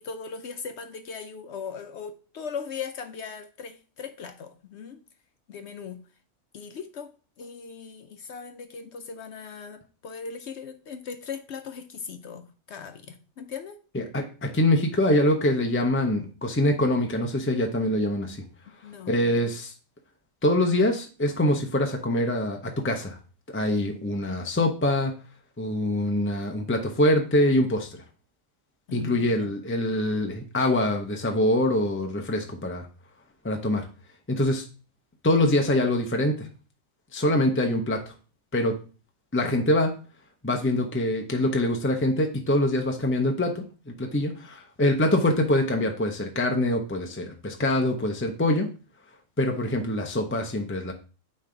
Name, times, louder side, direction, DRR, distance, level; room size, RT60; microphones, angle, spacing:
voice 1, 0.0-5.0 5.5-6.1 6.5-13.8 18.8-19.5 28.9-29.5, left 6 dB, 65° left, 0.8 m, -39 dB
voice 2, 13.9-18.4 19.1-19.7 20.4-23.2 23.5-25.1 25.6-27.9 28.9-32.9 33.4-33.9 34.3-34.6 35.2-36.5 37.1-38.0 38.5-38.7 39.3-39.9 40.4-48.7 49.4-50.9, left 1 dB, 20° left, 0.4 m, -24 dB
9.1 x 3.3 x 3.8 m
omnidirectional pair, 1.4 m